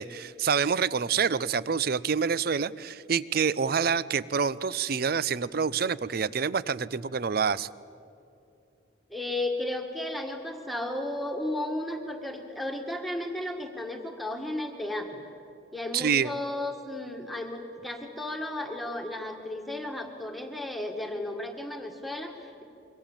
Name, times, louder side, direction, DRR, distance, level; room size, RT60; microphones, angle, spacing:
voice 1, 0.0-7.7 15.9-16.3, right 6 dB, 50° right, 18 dB, 0.5 m, -27 dB
voice 2, 9.1-15.2 15.7-22.6, left 1 dB, ahead, 2 dB, 1.8 m, -34 dB
26.0 x 24.0 x 7.3 m, 2.6 s
head